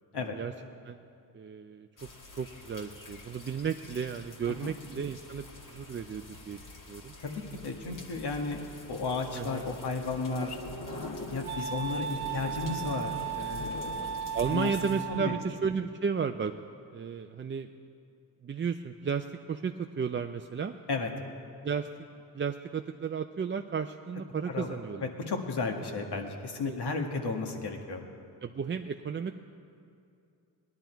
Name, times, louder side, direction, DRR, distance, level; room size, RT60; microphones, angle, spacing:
voice 1, 0.1-0.5 0.8-1.0 1.3-2.1 2.4-7.1 9.3-9.7 14.3-16.6 16.9-17.7 18.4-20.8 21.6-21.9 22.3-25.1 26.6-26.8 28.4-29.3, right 6 dB, 25° right, 6 dB, 0.5 m, -33 dB
sound 1, 2.0-15.1, left 2 dB, 45° left, 1.9 m, -45 dB
voice 2, 7.2-8.6 8.9-10.6 11.3-14.1 14.5-14.7 15.1-15.4 20.9-21.1 24.5-24.8 25.3-28.0, left 4 dB, 60° left, 3 dB, 1.8 m, -34 dB
Wind instrument woodwind instrument, 10.1-15.5, right 8 dB, 80° right, 1.2 m, -37 dB
18.5 x 11.0 x 4.6 m, 2.5 s
cardioid pair, 65°, 45 cm